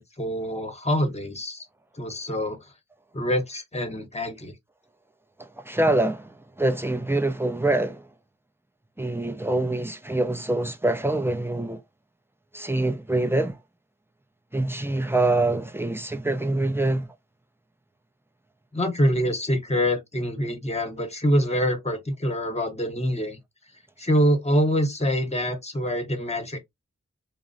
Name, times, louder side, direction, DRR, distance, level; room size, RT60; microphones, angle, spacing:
voice 1, 0.0-1.6 2.0-2.6 3.1-4.5 18.7-23.4 24.0-26.6, equal, 20° left, 0.9 m, -25 dB
voice 2, 5.6-8.1 9.0-11.8 12.5-13.6 14.5-17.1, right 2 dB, 10° right, 0.4 m, -25 dB
2.9 x 2.0 x 2.5 m
wide cardioid pair, 40°, 29 cm